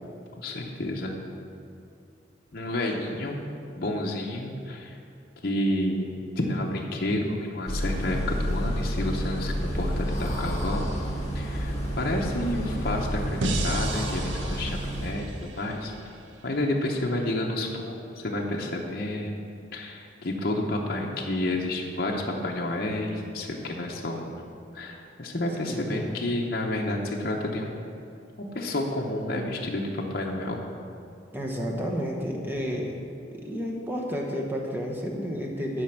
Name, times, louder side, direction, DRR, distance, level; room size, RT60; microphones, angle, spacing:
voice 1, 0.4-1.1 2.5-3.4 3.8-5.0 5.4-6.1 6.4-10.9 11.3-15.9 16.4-19.3 19.7-24.4 24.7-27.8 28.5-30.6, left 1 dB, 55° left, -1 dB, 0.8 m, -30 dB
sound 1, 7.7-15.1, equal, 20° left, 1.7 m, -29 dB
sound 2, 13.4-16.5, right 2 dB, 85° right, 0.8 m, -34 dB
voice 2, 25.6-26.2 31.3-33.0 33.3-35.8, equal, 10° right, -1 dB, 1.0 m, -31 dB
11.0 x 5.1 x 5.9 m, 2.6 s
head